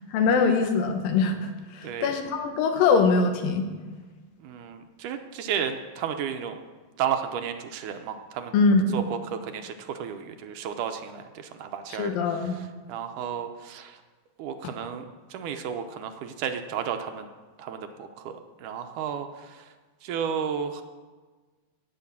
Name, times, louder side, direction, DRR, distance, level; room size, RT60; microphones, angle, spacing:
voice 1, 0.1-3.7 8.5-9.0 12.0-12.6, left 4 dB, 85° left, 6 dB, 2.9 m, -23 dB
voice 2, 4.4-6.6 7.0-8.5 8.9-14.0 14.4-15.1 15.3-17.3 17.6-19.7 20.0-20.8, right 8 dB, 75° right, 7 dB, 2.1 m, -33 dB
17.5 x 6.2 x 7.2 m, 1.4 s
omnidirectional pair, 4.0 m